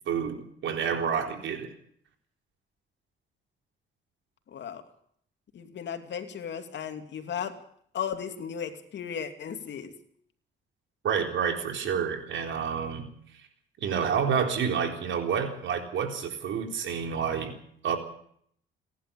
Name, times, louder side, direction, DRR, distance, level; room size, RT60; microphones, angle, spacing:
voice 1, 0.1-1.7 11.0-13.1 13.8-17.6 17.8-18.0, right 7 dB, 70° right, 5 dB, 4.0 m, -29 dB
voice 2, 4.5-4.8 5.5-7.6 7.9-9.9, left 8 dB, 65° left, 7 dB, 2.7 m, -35 dB
28.5 x 11.5 x 8.8 m, 0.65 s
cardioid pair, 90°, 20 cm